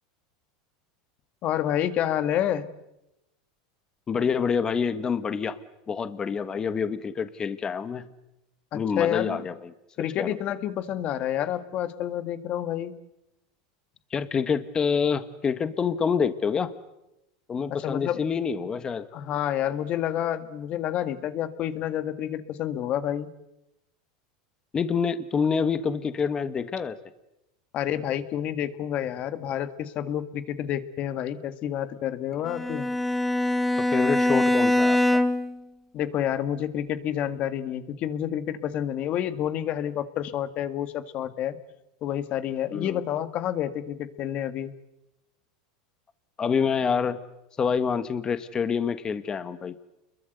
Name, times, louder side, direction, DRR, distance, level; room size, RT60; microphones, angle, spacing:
voice 1, 1.4-2.7 8.7-9.4 10.0-13.0 17.8-18.2 19.1-23.3 27.7-32.9 35.9-41.6 42.0-44.7, left 10 dB, 45° left, 12 dB, 1.8 m, -29 dB
voice 2, 4.1-5.6 5.9-8.1 8.7-9.7 10.0-10.4 14.1-16.7 17.5-19.1 24.7-27.0 33.8-35.2 42.7-43.0 46.4-47.2 47.6-49.7, left 6 dB, 25° left, 12 dB, 1.6 m, -27 dB
Bowed string instrument, 32.5-35.6, left 1 dB, 5° left, 1.4 m, -23 dB
29.5 x 22.0 x 8.0 m, 0.89 s
supercardioid pair, 120°, 3 cm